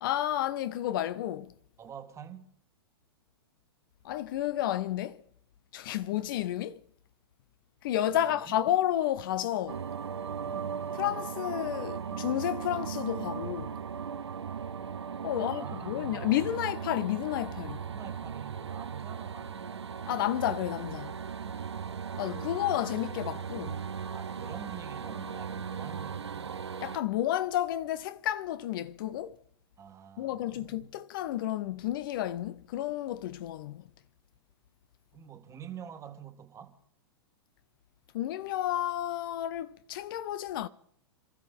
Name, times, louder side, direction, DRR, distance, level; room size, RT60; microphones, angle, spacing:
voice 1, 0.0-1.5 4.0-5.2 5.7-6.8 7.8-9.8 11.0-13.8 15.2-17.8 20.1-21.1 22.2-23.8 26.8-29.4 30.2-33.9 38.1-40.7, left 12 dB, 55° left, 0.6 m, -31 dB
voice 2, 1.8-2.5 8.1-8.5 10.4-10.8 15.3-16.6 17.9-19.9 21.4-21.7 24.1-26.6 29.8-30.9 35.1-36.8, right 8 dB, 20° right, 1.5 m, -47 dB
sound 1, 9.7-27.0, right 7 dB, 85° right, 0.8 m, -38 dB
28.0 x 13.0 x 3.5 m
hypercardioid pair, 110°, 14 cm